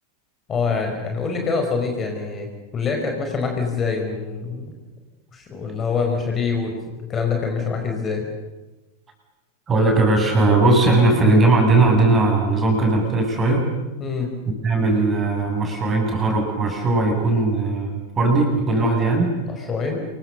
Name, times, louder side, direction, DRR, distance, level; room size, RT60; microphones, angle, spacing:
voice 1, 0.5-4.7 5.3-8.3 14.0-14.3 19.5-20.0, left 5 dB, 25° left, 3 dB, 4.9 m, -25 dB
voice 2, 9.7-13.7 14.5-19.3, right 2 dB, 20° right, 2 dB, 7.5 m, -18 dB
27.5 x 23.0 x 6.9 m, 1.1 s
figure-of-eight pair, 90°, 0 cm